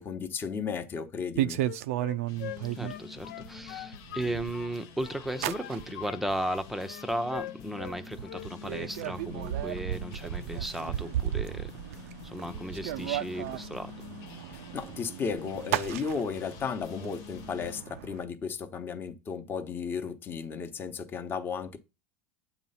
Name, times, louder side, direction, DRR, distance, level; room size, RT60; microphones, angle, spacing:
voice 1, 0.0-1.6 14.7-21.8, left 6 dB, 30° left, 0.9 m, -34 dB
sound 1, 1.4-2.9 3.4-4.7 5.0-6.1 6.5-6.9 7.3-7.4 7.7-18.2, right 13 dB, 80° right, 0.4 m, -35 dB
Wind instrument woodwind instrument, 1.6-4.7 5.0-6.6 6.9-8.0 8.2-8.5, left 12 dB, 85° left, 0.4 m, -42 dB
sound 2, 2.3-17.8, left 10 dB, 60° left, 0.7 m, -48 dB
voice 2, 2.8-11.7 12.2-13.9, right 1 dB, 5° right, 0.6 m, -35 dB
8.5 x 3.0 x 5.5 m
supercardioid pair, 125°, 8 cm